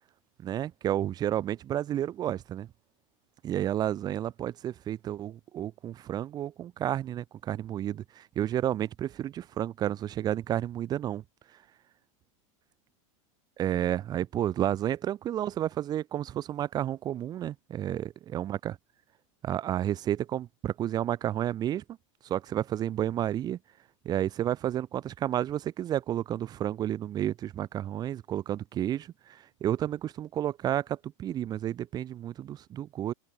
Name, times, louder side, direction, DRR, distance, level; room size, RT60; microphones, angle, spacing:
voice 1, 0.4-2.7 3.4-11.2 13.6-18.8 19.4-21.8 22.2-23.6 24.0-33.1, right 11 dB, 25° right, 2.8 m, -31 dB
open air
supercardioid pair, 170°, 17 cm